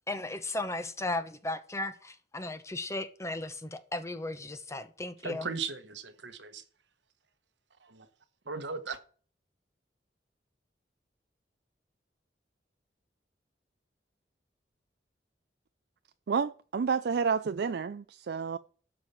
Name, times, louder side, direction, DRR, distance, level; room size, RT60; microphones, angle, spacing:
voice 1, 0.1-5.5, left 2 dB, 15° left, 0.9 m, -36 dB
voice 2, 5.2-6.6 7.8-8.0 8.5-9.0, right 4 dB, 85° right, 1.3 m, -37 dB
voice 3, 16.3-18.6, right 5 dB, 65° right, 0.4 m, -30 dB
12.0 x 5.0 x 7.2 m
head